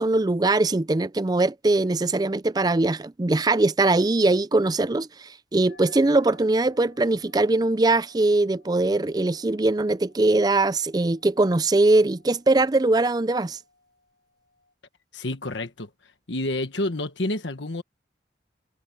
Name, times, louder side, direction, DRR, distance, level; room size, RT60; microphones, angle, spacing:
voice 1, 0.0-13.6, right 2 dB, 20° right, 0.4 m, -21 dB
sound 1, 5.7-14.7, left 2 dB, 60° left, 6.8 m, -57 dB
voice 2, 15.1-15.9 16.3-17.8, left 1 dB, 75° left, 1.4 m, -29 dB
head